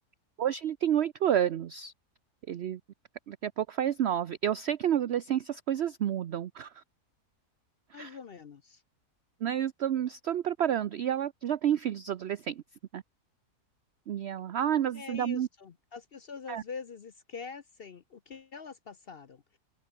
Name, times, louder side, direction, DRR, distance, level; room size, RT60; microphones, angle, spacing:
voice 1, 0.4-1.9 2.5-2.8 3.3-6.8 7.9-8.1 9.4-12.6 12.9-13.0 14.1-15.5 16.5-16.6, right 10 dB, 55° right, 0.8 m, -30 dB
voice 2, 7.9-8.8 14.9-19.6, left 5 dB, 50° left, 0.8 m, -44 dB
omnidirectional pair, 1.7 m